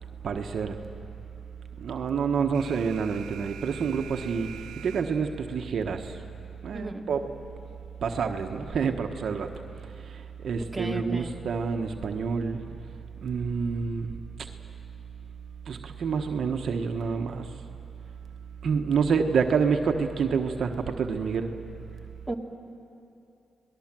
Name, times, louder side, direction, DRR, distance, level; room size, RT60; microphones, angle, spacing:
voice 1, 0.2-0.8 1.8-4.5 4.8-6.2 6.6-7.3 8.0-9.5 10.1-12.6 13.2-14.2 15.7-17.5 18.6-21.5, right 5 dB, 70° right, 5 dB, 1.2 m, -28 dB
Alarm, 2.5-5.5, right 8 dB, 85° right, 1.0 m, -45 dB
voice 2, 6.7-7.1 10.7-11.3 22.3-22.4, right 2 dB, 10° right, 0 dB, 2.4 m, -34 dB
28.0 x 19.0 x 7.6 m, 2.7 s
cardioid pair, 60°, 0 cm